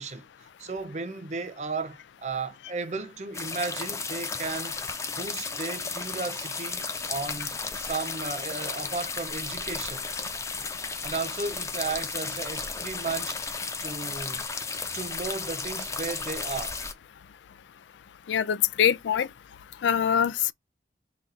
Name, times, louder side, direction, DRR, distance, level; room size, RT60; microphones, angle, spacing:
voice 1, 0.0-4.8 5.2-6.8 7.1-10.1 11.0-13.4 13.8-14.4 14.9-16.8, right 4 dB, 40° right, 0.5 m, -34 dB
sound 1, 3.3-16.9, left 4 dB, 15° left, 0.4 m, -34 dB
voice 2, 18.3-19.3 19.8-20.5, left 8 dB, 85° left, 0.3 m, -23 dB
3.9 x 2.3 x 4.1 m
head